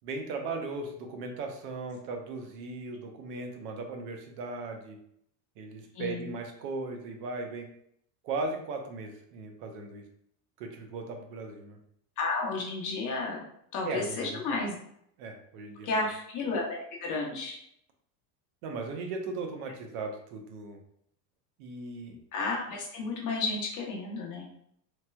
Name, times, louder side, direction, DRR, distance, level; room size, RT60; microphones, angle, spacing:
voice 1, 0.0-5.0 5.6-7.7 8.2-10.1 10.6-11.8 13.9-14.6 15.2-16.0 18.6-20.8 21.6-22.2, right 3 dB, 75° right, 4 dB, 0.8 m, -37 dB
voice 2, 5.9-6.3 12.2-13.4 13.7-14.7 15.8-17.6 22.3-24.5, left 3 dB, 40° left, -1 dB, 0.7 m, -32 dB
3.1 x 2.9 x 2.2 m, 0.71 s
cardioid pair, 150°, 48 cm